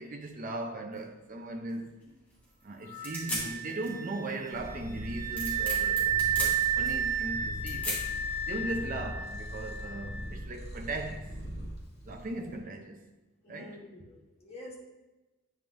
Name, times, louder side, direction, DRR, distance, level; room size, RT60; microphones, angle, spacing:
voice 1, 0.0-2.0 2.6-8.1 8.5-11.3 12.1-13.0 13.5-13.8, right 2 dB, 40° right, 0.6 m, -38 dB
sound 1, 0.9-9.0, left 1 dB, 10° left, 2.0 m, -40 dB
Wind instrument woodwind instrument, 2.9-10.3, right 7 dB, 80° right, 1.2 m, -32 dB
Purr, 4.5-12.6, equal, 50° left, 2.3 m, -41 dB
voice 2, 13.4-14.8, left 1 dB, 30° left, 1.2 m, -48 dB
9.2 x 5.2 x 2.6 m
head